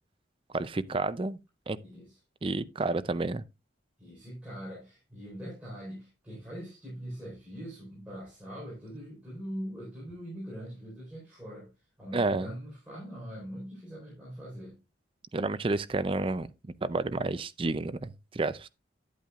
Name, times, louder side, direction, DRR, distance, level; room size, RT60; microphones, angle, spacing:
voice 1, 0.5-1.4 1.7-1.8 2.4-3.4 12.1-12.5 15.3-16.5 16.8-18.7, right 3 dB, 30° right, 0.4 m, -30 dB
voice 2, 1.8-2.2 4.0-11.7 12.0-14.8, equal, 10° right, 4.3 m, -42 dB
10.5 x 8.4 x 2.4 m
head